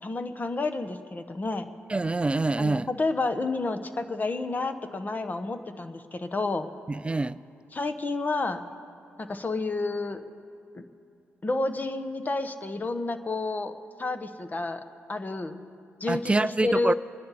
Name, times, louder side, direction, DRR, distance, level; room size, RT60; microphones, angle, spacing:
voice 1, 0.0-1.7 2.6-6.7 7.7-8.6 9.2-10.2 10.7-10.8 11.4-13.7 14.0-14.8 15.1-15.6 16.0-16.9, left 3 dB, 35° left, 1.1 m, -30 dB
voice 2, 1.9-2.9 6.9-7.4 16.1-16.9, right 2 dB, 20° right, 0.4 m, -25 dB
25.0 x 10.5 x 4.2 m
cardioid pair, 60°, 5 cm